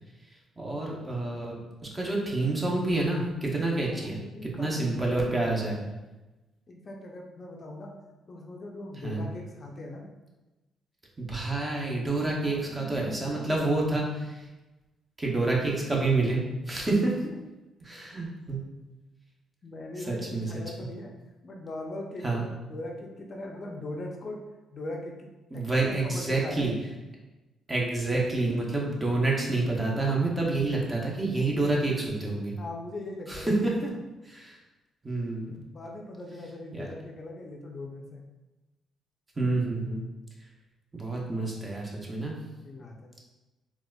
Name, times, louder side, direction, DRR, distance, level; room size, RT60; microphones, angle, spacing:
voice 1, 0.6-1.6 1.9-5.8 9.0-9.3 11.2-14.4 15.2-17.3 17.8-18.6 20.1-20.5 22.2-22.4 25.5-26.7 27.7-32.5 33.3-33.9 34.2-34.6 35.0-35.7 36.7-36.9 39.4-40.0 40.9-42.3, right 2 dB, 25° right, -2 dB, 0.8 m, -28 dB
voice 2, 4.1-5.0 6.7-8.0 8.3-10.1 12.5-13.7 19.6-21.1 21.4-24.4 24.7-26.7 32.6-33.5 35.7-38.2 42.6-43.1, left 2 dB, 45° left, 1 dB, 0.4 m, -40 dB
3.9 x 2.3 x 2.2 m, 1.1 s
cardioid pair, 80°, 0 cm